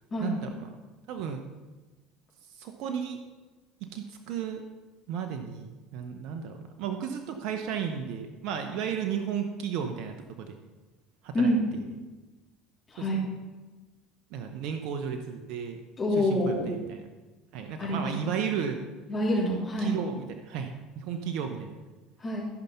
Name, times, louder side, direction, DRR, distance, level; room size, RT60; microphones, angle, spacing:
voice 1, 0.2-0.7 1.1-1.4 2.4-3.2 3.9-4.6 5.1-10.6 11.2-11.8 13.0-13.1 14.3-15.8 16.2-17.0 17.5-18.8 19.8-21.8, right 7 dB, 65° right, 6 dB, 0.9 m, -34 dB
voice 2, 16.0-16.7 17.8-18.3 19.1-19.9 22.2-22.5, left 1 dB, 30° left, -7 dB, 3.2 m, -27 dB
14.5 x 5.7 x 5.6 m, 1.2 s
hypercardioid pair, 75°, 0 cm